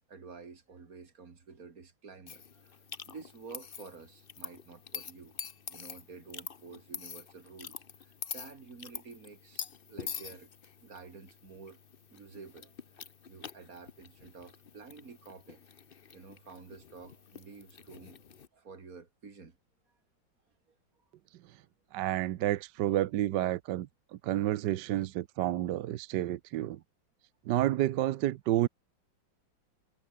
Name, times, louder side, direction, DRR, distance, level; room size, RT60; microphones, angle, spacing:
voice 1, 0.1-5.3 5.7-10.5 10.8-11.8 12.1-15.6 16.1-18.3 18.5-19.6 20.7-20.8 21.5-21.7, right 5 dB, 50° right, 2.8 m, -50 dB
sound 1, 2.3-18.5, left 6 dB, 40° left, 0.9 m, -46 dB
voice 2, 21.9-23.9 24.2-26.8 27.5-28.7, right 14 dB, 75° right, 1.3 m, -30 dB
omnidirectional pair, 2.0 m